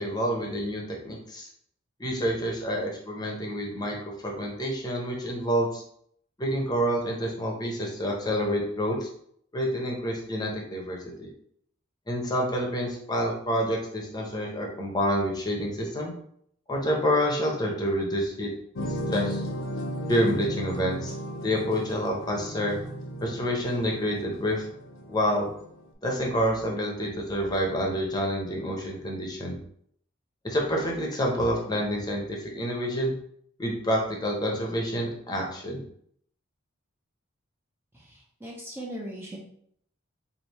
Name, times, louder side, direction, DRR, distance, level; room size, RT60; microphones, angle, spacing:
voice 1, 0.0-1.5 2.0-4.0 4.2-5.8 6.4-9.1 9.5-11.3 12.1-16.1 16.7-18.5 19.1-19.4 20.1-21.1 21.4-22.8 23.2-24.6 25.1-25.5 26.0-29.6 30.4-33.1 33.6-35.8, equal, 20° left, 0 dB, 0.8 m, -28 dB
sound 1, 18.7-25.8, equal, 70° left, 0.6 m, -35 dB
voice 2, 37.9-39.4, right 1 dB, 10° right, -3 dB, 0.5 m, -39 dB
3.3 x 2.6 x 4.1 m, 0.66 s
head